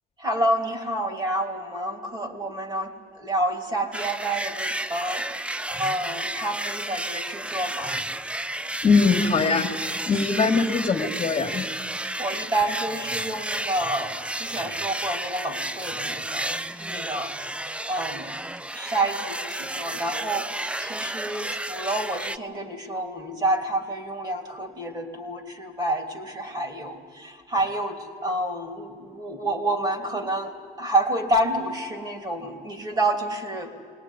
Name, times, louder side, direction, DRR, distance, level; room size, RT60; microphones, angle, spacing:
voice 1, 0.2-8.0 10.0-10.1 10.4-10.5 12.2-17.3 17.8-18.3 18.7-33.7, right 1 dB, 25° right, 5 dB, 2.9 m, -29 dB
sound 1, 3.9-22.4, right 1 dB, 5° right, 0.5 m, -32 dB
voice 2, 8.8-9.7 10.1-11.7, left 4 dB, 35° left, 2 dB, 2.2 m, -21 dB
21.5 x 18.5 x 10.0 m, 2.2 s
cardioid pair, 110°, 17 cm